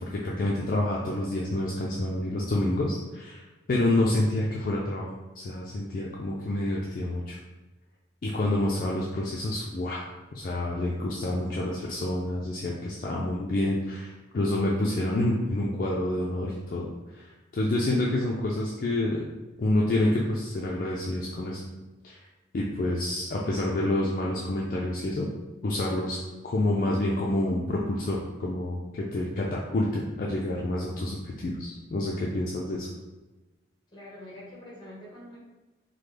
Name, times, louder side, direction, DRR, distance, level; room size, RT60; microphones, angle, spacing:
voice 1, 0.0-3.4 3.7-7.4 8.2-10.0 10.3-19.2 19.6-21.6 22.0-22.2 22.5-25.3 25.6-26.2 26.4-32.9, left 1 dB, 45° left, -4 dB, 0.3 m, -28 dB
voice 2, 33.9-35.4, left 1 dB, 25° left, -6 dB, 1.1 m, -45 dB
3.1 x 2.1 x 3.3 m, 1.1 s
head